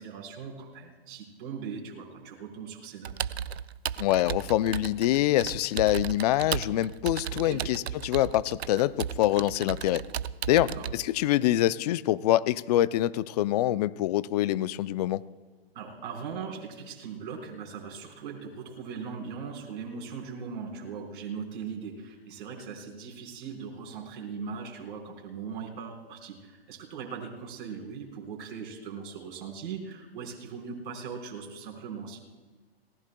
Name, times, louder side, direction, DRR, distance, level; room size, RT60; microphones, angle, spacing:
voice 1, 0.0-3.1 7.3-7.7 10.6-10.8 15.7-32.2, right 6 dB, 55° right, 0 dB, 4.7 m, -39 dB
Computer keyboard, 3.1-10.9, right 8 dB, 85° right, 0.6 m, -35 dB
voice 2, 4.0-10.0 10.5-15.2, left 14 dB, 40° left, 17 dB, 0.5 m, -25 dB
27.5 x 19.0 x 2.3 m, 1.3 s
hypercardioid pair, 130°, 31 cm